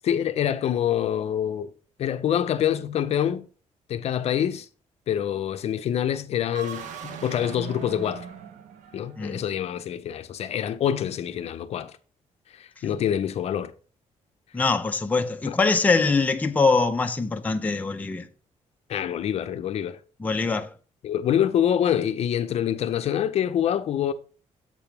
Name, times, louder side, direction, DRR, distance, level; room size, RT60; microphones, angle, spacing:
voice 1, 0.0-1.7 2.0-3.5 3.9-4.7 5.1-8.3 8.9-11.9 12.5-13.7 15.5-15.6 18.9-20.0 21.0-24.1, left 10 dB, 55° left, 0.6 m, -26 dB
sound 1, 6.4-9.4, right 6 dB, 90° right, 1.0 m, -39 dB
voice 2, 14.5-18.3 20.2-20.7, left 4 dB, 10° left, 0.6 m, -23 dB
7.4 x 3.5 x 5.9 m
cardioid pair, 155°, 12 cm